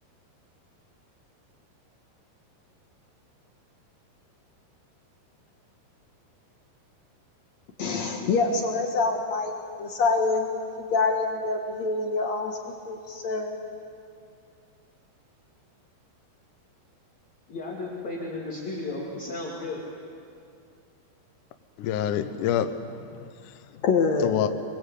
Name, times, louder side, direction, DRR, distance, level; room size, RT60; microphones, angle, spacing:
voice 1, 7.8-10.5 10.8-13.6 23.8-24.4, left 4 dB, 60° left, 3 dB, 1.9 m, -26 dB
voice 2, 17.5-19.9, left 2 dB, 45° left, -4 dB, 3.4 m, -34 dB
voice 3, 21.8-23.5 24.2-24.5, left 10 dB, 80° left, 9 dB, 1.8 m, -27 dB
27.0 x 21.0 x 8.4 m, 2.4 s
omnidirectional pair, 5.0 m